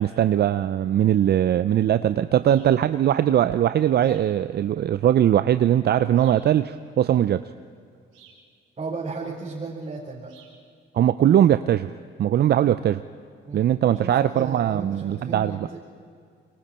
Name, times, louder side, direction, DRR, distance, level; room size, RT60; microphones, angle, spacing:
voice 1, 0.0-7.5 10.9-11.9 12.2-13.0 13.5-15.7, right 11 dB, 55° right, 12 dB, 0.6 m, -20 dB
sound 1, 2.5-2.8 4.0-4.4 6.2-6.5 8.1-8.5 10.3-10.6, right 6 dB, 90° right, 4.6 m, -53 dB
voice 2, 8.8-10.4 13.5-15.8, right 4 dB, 35° right, -6 dB, 4.2 m, -35 dB
26.5 x 23.5 x 4.4 m, 2.2 s
cardioid pair, 90°, 20 cm